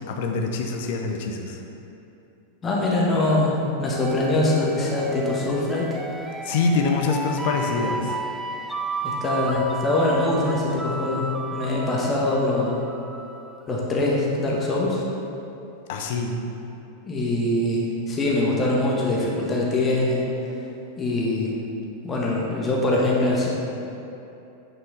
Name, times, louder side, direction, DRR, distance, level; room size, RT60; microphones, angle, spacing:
voice 1, 0.1-1.6 6.4-8.2 15.9-16.4, left 4 dB, 50° left, 3 dB, 0.8 m, -25 dB
voice 2, 2.6-5.9 9.0-12.8 13.7-15.0 17.0-20.3 20.9-21.6 22.0-23.5, left 2 dB, 20° left, -4 dB, 1.6 m, -23 dB
sound 1, 3.9-13.6, right 3 dB, 10° right, 0.4 m, -33 dB
8.9 x 5.5 x 4.2 m, 2.8 s
figure-of-eight pair, 90°, 0 cm